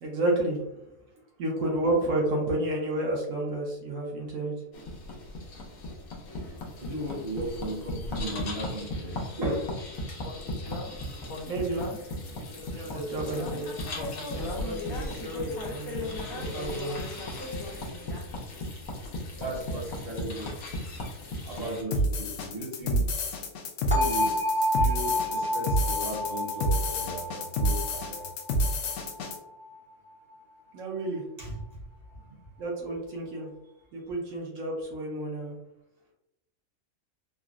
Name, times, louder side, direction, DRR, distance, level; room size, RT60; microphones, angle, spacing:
voice 1, 0.0-0.7 1.4-4.5 11.5-11.8 12.3-13.7 14.5-17.0 30.7-31.2 32.6-33.5 33.9-35.5, right 1 dB, 70° right, -2 dB, 1.1 m, -31 dB
sound 1, 4.7-21.8, left 1 dB, 90° left, 1.2 m, -36 dB
voice 2, 6.8-9.8 19.4-20.8 21.4-23.1 23.8-28.3 31.4-31.8 32.1-32.4, right 1 dB, 50° right, -3 dB, 1.1 m, -36 dB
sound 2, 21.9-29.4, equal, 65° left, 0.8 m, -28 dB
sound 3, 23.9-29.7, left 1 dB, 10° right, 0.4 m, -30 dB
3.7 x 2.0 x 2.4 m, 0.83 s
omnidirectional pair, 1.5 m